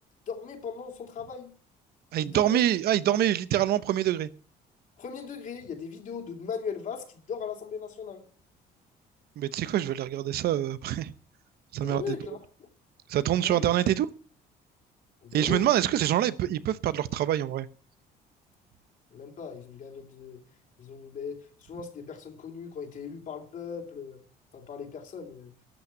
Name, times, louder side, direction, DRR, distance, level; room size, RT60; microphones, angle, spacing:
voice 1, 0.3-1.5 2.2-2.6 5.0-8.2 11.8-12.7 13.4-13.7 15.2-15.6 19.1-20.4 20.8-24.2 24.5-25.5, left 6 dB, 50° left, 3.1 m, -38 dB
voice 2, 2.1-4.3 9.4-11.1 11.7-12.2 13.1-14.1 15.3-17.7, right 12 dB, 65° right, 0.9 m, -25 dB
13.0 x 6.0 x 9.0 m
cardioid pair, 110°, 17 cm